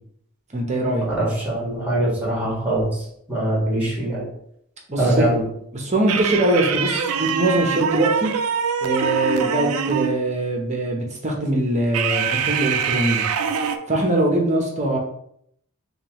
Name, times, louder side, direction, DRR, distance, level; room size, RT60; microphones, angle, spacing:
voice 1, 0.5-1.1 4.9-5.3 5.7-8.3 8.8-13.3 13.9-15.0, right 1 dB, 30° right, 0 dB, 0.8 m, -22 dB
voice 2, 1.1-3.0 3.3-4.2 5.0-5.4, right 1 dB, 5° right, -6 dB, 1.5 m, -22 dB
sound 1, 6.1-10.2 11.9-13.8, right 7 dB, 75° right, 0.4 m, -24 dB
5.1 x 2.3 x 3.0 m, 0.71 s
head